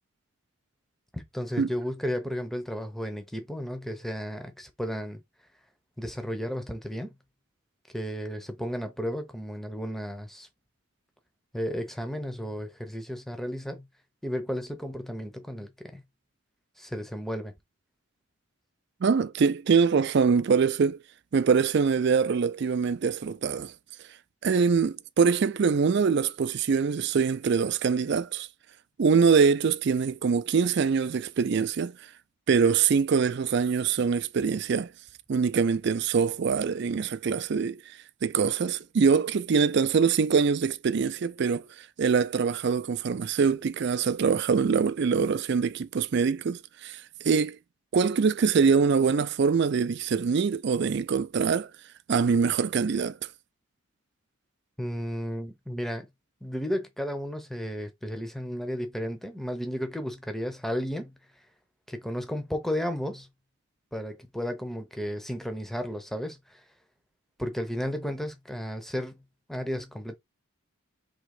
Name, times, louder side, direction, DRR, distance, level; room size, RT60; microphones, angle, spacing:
voice 1, 1.1-5.2 6.0-7.1 7.9-10.5 11.5-13.9 14.2-16.0 16.8-17.5 54.8-56.1 56.4-61.1 61.9-63.3 63.9-66.6 67.4-69.2 69.5-70.2, equal, ahead, 0.6 m, -33 dB
voice 2, 19.0-21.0 21.3-23.7 24.4-28.5 29.0-31.9 32.5-34.9 35.3-37.8 38.2-41.7 42.0-47.6 47.9-51.7 52.1-53.2, right 5 dB, 50° right, 0.4 m, -24 dB
3.7 x 3.0 x 4.8 m
head